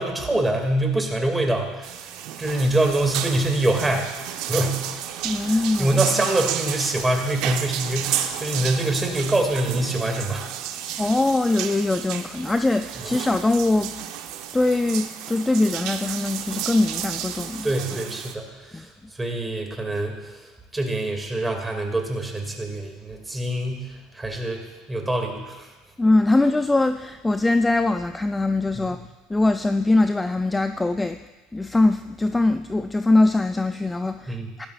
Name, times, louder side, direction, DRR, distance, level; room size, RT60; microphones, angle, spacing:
voice 1, 0.0-2.0 2.4-4.2 4.5-4.8 5.4-10.4 13.0-13.1 17.6-18.9 19.2-20.4 20.7-23.9 24.1-25.7 34.3-34.5, right 1 dB, 10° right, 2 dB, 2.4 m, -25 dB
sound 1, 1.8-18.3, right 10 dB, 65° right, 0.9 m, -32 dB
voice 2, 5.2-5.9 11.0-13.9 14.5-17.7 18.7-18.9 26.0-29.0 29.3-31.2 31.5-34.7, left 2 dB, 10° left, 9 dB, 0.4 m, -22 dB
17.0 x 12.5 x 2.5 m, 1.2 s
supercardioid pair, 95°, 0 cm